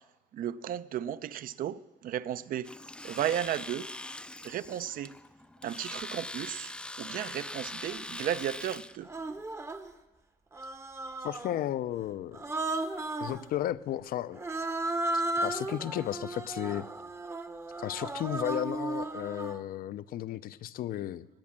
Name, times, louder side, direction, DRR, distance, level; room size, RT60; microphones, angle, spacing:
voice 1, 0.3-2.7 3.0-3.9 4.4-5.1 5.6-6.7 7.0-9.1, right 10 dB, 55° right, 16 dB, 0.5 m, -34 dB
Domestic sounds home sounds, 2.6-9.0, left 1 dB, 5° left, 0.4 m, -42 dB
Human voice, 7.9-8.0 9.0-9.9 10.5-11.6 12.3-13.4 14.3-19.6, right 2 dB, 15° right, 0.7 m, -35 dB
voice 2, 11.2-12.4 13.2-14.4 15.4-16.9 17.8-21.3, left 12 dB, 60° left, 17 dB, 0.5 m, -34 dB
19.5 x 7.4 x 7.4 m, 1.1 s
cardioid pair, 110°, 17 cm